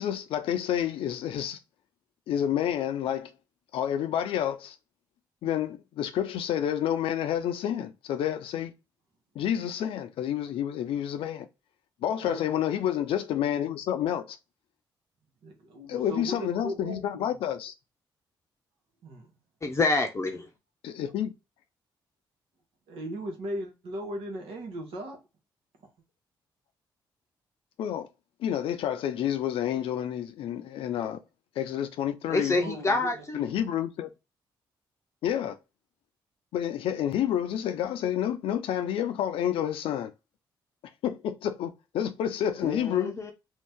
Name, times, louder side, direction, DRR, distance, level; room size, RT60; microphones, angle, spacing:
voice 1, 0.0-1.6 2.3-3.3 3.7-4.8 5.4-8.7 9.4-11.5 12.0-14.4 15.9-17.7 20.8-21.3 27.8-28.1 28.4-31.2 31.6-32.6 33.3-34.1 35.2-35.6 36.5-40.1 41.0-43.2, left 10 dB, 80° left, 0.5 m, -29 dB
voice 2, 15.4-17.4 19.0-19.3 22.9-25.2 32.5-33.2, equal, 80° right, 1.1 m, -37 dB
voice 3, 19.6-20.5 32.3-33.5 42.6-43.3, left 3 dB, 30° left, 0.6 m, -27 dB
2.6 x 2.4 x 3.4 m
supercardioid pair, 65°, 9 cm